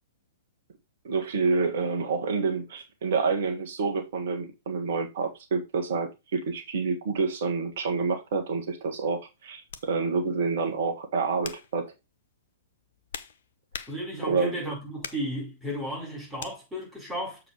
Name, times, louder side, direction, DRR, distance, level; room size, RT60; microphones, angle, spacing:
voice 1, 1.0-11.9 14.2-14.6, right 4 dB, 55° right, 1.6 m, -28 dB
sound 1, 9.7-9.9 10.6-10.8 11.4-11.8 12.7-14.3 15.0-15.3 16.4-16.6, left 7 dB, 55° left, 0.8 m, -41 dB
voice 2, 13.9-17.4, equal, 5° right, 5.0 m, -34 dB
7.2 x 4.8 x 4.9 m
figure-of-eight pair, 110°, 0 cm